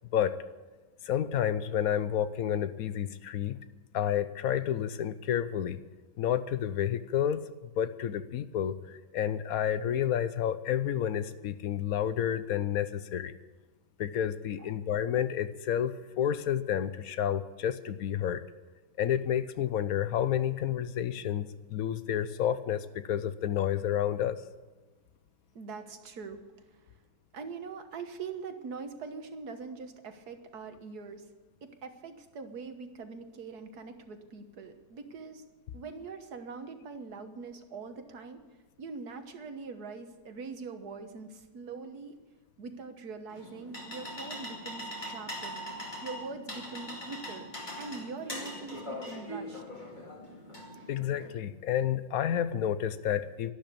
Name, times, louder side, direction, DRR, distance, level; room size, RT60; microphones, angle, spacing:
voice 1, 1.0-3.6 3.9-5.8 6.2-13.3 14.0-18.4 19.0-24.4 50.9-53.5, left 10 dB, 70° left, 13 dB, 1.1 m, -30 dB
voice 2, 25.6-26.4 26.7-26.8 27.3-31.3 31.6-35.4 35.7-38.4 38.8-42.2 42.6-45.6 46.0-47.5 47.8-49.6, right 4 dB, 85° right, 7 dB, 1.8 m, -43 dB
sound 1, 43.3-51.3, equal, 30° left, 2.5 m, -41 dB
12.0 x 11.5 x 8.6 m, 1.2 s
omnidirectional pair, 1.6 m